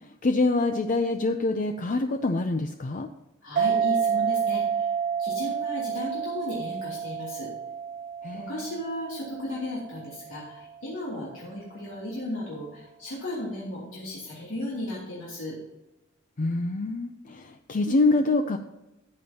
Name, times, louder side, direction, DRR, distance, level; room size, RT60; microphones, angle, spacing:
voice 1, 0.2-3.1 8.2-8.6 16.4-18.6, left 2 dB, 40° left, 7 dB, 0.5 m, -25 dB
voice 2, 3.4-4.9 5.2-7.5 8.3-15.6, left 1 dB, 80° left, -6 dB, 2.9 m, -35 dB
sound 1, 3.6-10.6, right 7 dB, 45° right, 0.4 m, -29 dB
13.5 x 8.7 x 2.9 m, 0.97 s
head